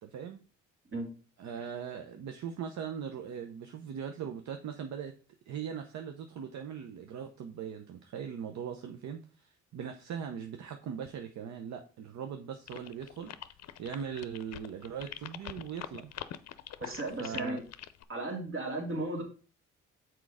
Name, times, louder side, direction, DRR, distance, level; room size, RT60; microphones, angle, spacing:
voice 1, 0.0-0.4 1.4-5.1 5.5-16.1 17.2-17.6, right 8 dB, 65° right, 6 dB, 0.8 m, -40 dB
sound 1, 12.7-18.0, left 11 dB, 60° left, 0.6 m, -44 dB
voice 2, 16.8-17.6 18.1-19.2, right 2 dB, 45° right, 3 dB, 2.3 m, -35 dB
6.2 x 4.6 x 4.9 m, 0.37 s
cardioid pair, 90°, 30 cm